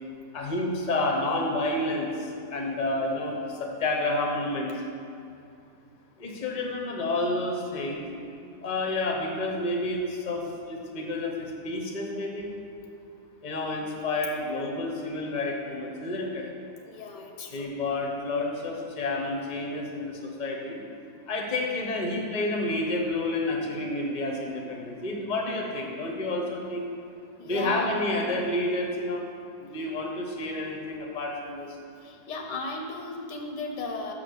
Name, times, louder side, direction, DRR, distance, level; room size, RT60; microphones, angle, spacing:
voice 1, 0.3-2.1 2.5-4.7 6.2-8.0 8.6-10.4 10.7-12.5 13.4-16.4 17.5-20.8 21.3-26.8 27.5-29.2 29.6-31.7, left 2 dB, 30° left, 0 dB, 1.0 m, -29 dB
voice 2, 16.8-17.8 27.4-28.0 32.0-34.1, left 3 dB, 90° left, 2 dB, 1.6 m, -36 dB
5.9 x 5.8 x 6.6 m, 2.5 s
omnidirectional pair, 1.8 m